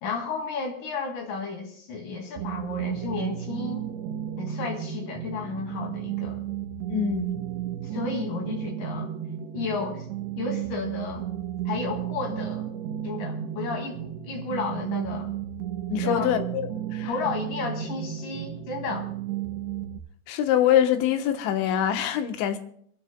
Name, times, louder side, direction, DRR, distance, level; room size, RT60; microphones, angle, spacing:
voice 1, 0.0-3.9 4.4-6.4 7.9-9.1 9.5-10.0 10.4-11.3 11.6-12.7 13.0-15.3 16.0-16.3 17.0-19.1, left 4 dB, 50° left, 3.2 m, -32 dB
sound 1, 2.4-20.0, right 11 dB, 80° right, 2.5 m, -33 dB
voice 2, 6.9-7.3 15.9-16.6 16.9-17.1 20.3-22.6, left 10 dB, 75° left, 3.1 m, -24 dB
27.0 x 14.0 x 2.2 m
omnidirectional pair, 5.8 m